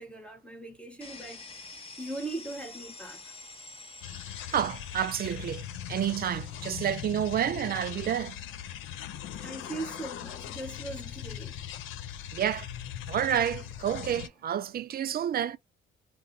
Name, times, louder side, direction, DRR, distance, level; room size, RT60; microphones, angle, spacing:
voice 1, 0.0-3.2 9.3-11.6, right 2 dB, 5° left, 0.7 m, -40 dB
sound 1, 1.0-14.7, left 3 dB, 30° left, 1.0 m, -51 dB
sound 2, 4.0-14.3, left 10 dB, 90° left, 0.4 m, -40 dB
voice 2, 4.5-8.4 12.3-12.7 13.1-15.6, right 10 dB, 50° right, 0.4 m, -29 dB
2.6 x 2.1 x 3.8 m
cardioid pair, 90°, 20 cm